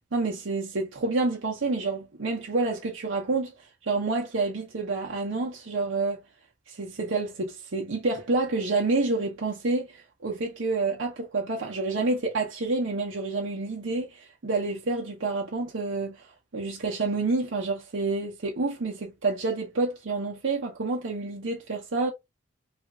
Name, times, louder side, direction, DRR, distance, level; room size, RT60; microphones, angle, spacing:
voice 1, 0.1-3.5 3.8-6.2 6.7-10.0 10.2-16.2 16.5-22.1, right 3 dB, 75° right, 0.7 m, -28 dB
3.5 x 2.3 x 2.8 m
head